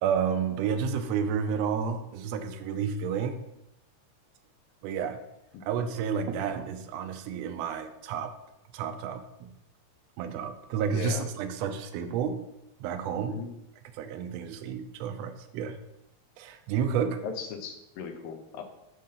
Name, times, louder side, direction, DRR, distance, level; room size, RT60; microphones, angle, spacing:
voice 1, 0.0-3.4 4.8-5.2 5.6-8.3 8.7-9.5 10.2-12.4 12.8-13.4 13.9-15.8 16.4-17.2, right 7 dB, 80° right, 7 dB, 1.5 m, -31 dB
voice 2, 10.8-11.2 13.3-13.5 17.2-18.6, left 6 dB, 90° left, 4 dB, 1.2 m, -37 dB
5.5 x 3.8 x 5.5 m, 0.90 s
omnidirectional pair, 3.4 m